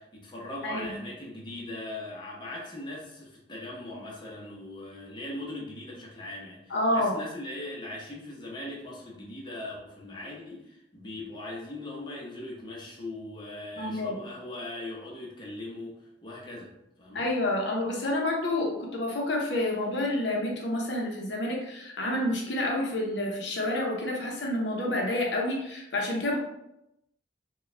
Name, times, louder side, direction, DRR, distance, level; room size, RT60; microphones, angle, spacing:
voice 1, 0.0-16.7 17.0-17.3, left 1 dB, 25° left, -4 dB, 0.8 m, -40 dB
voice 2, 0.6-1.0 6.7-7.1 13.8-14.2 17.1-26.4, left 1 dB, 70° left, -1 dB, 0.8 m, -29 dB
4.6 x 2.3 x 3.3 m, 0.86 s
head